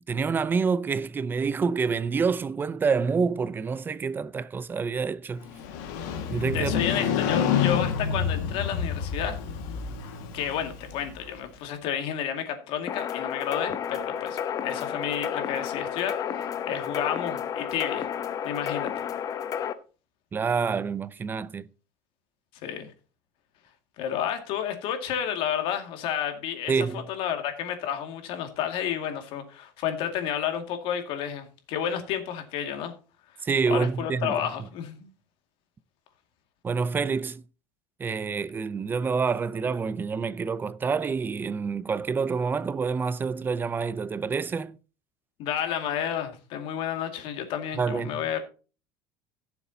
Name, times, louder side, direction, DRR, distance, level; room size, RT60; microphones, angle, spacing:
voice 1, 0.1-5.4 6.3-6.7 7.0-7.2 20.3-21.7 26.7-27.0 33.4-34.4 36.6-37.4 38.0-44.8 47.8-48.1, right 5 dB, 20° right, 0.6 m, -27 dB
Motorcycle, 5.4-11.4, left 7 dB, 85° left, 2.0 m, -28 dB
voice 2, 6.5-9.4 10.3-18.1 18.4-18.9 22.6-22.9 24.0-32.9 33.7-35.1 45.4-48.4, left 9 dB, 65° left, 2.2 m, -31 dB
sound 1, 12.9-19.7, left 8 dB, 35° left, 0.9 m, -31 dB
16.5 x 7.0 x 2.8 m
cardioid pair, 135°, 10 cm